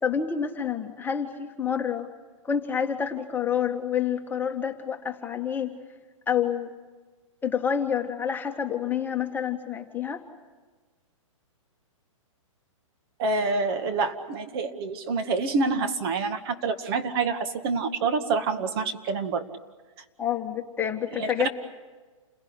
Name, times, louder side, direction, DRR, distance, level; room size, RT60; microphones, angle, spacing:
voice 1, 0.0-2.1 2.4-5.7 6.3-6.7 7.4-10.2 20.2-21.5, left 8 dB, 10° left, 3 dB, 1.9 m, -28 dB
voice 2, 13.2-19.4 21.2-21.5, right 4 dB, 45° right, 8 dB, 2.0 m, -27 dB
29.0 x 17.0 x 10.0 m, 1.3 s
hypercardioid pair, 130°, 17 cm